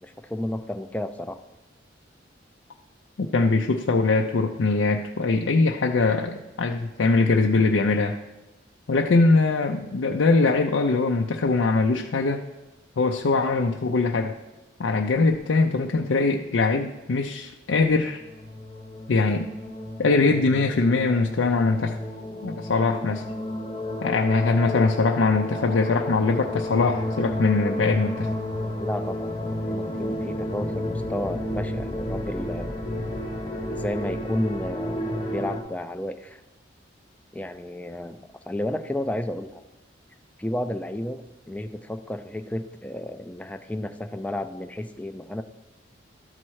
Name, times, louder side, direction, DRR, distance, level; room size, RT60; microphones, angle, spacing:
voice 1, 0.0-1.4 28.8-29.3 29.7-32.8 33.7-36.4 37.3-39.6 40.4-45.4, left 1 dB, 5° left, 8 dB, 0.4 m, -32 dB
voice 2, 3.2-8.2 8.9-12.4 13.0-14.3 14.8-18.2 19.1-19.5 20.0-22.0 22.4-23.2 24.0-28.3, left 3 dB, 80° left, 2 dB, 0.5 m, -22 dB
sound 1, 18.0-35.6, left 1 dB, 30° left, 1.0 m, -31 dB
12.0 x 4.3 x 4.7 m, 1.1 s
head